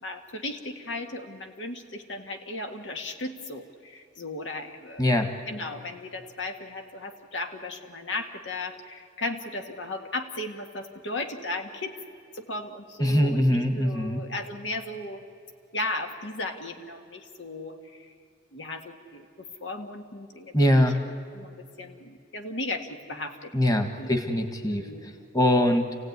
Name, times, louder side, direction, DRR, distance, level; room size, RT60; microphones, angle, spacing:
voice 1, 0.0-5.0 5.5-12.0 12.3-15.3 15.7-18.1 18.5-24.2 24.7-25.1, left 2 dB, 85° left, 5 dB, 1.9 m, -36 dB
voice 2, 5.0-5.3 13.0-14.2 20.5-21.0 23.5-24.9 25.3-25.9, left 1 dB, 20° left, 6 dB, 1.6 m, -22 dB
28.5 x 16.5 x 9.6 m, 2.3 s
head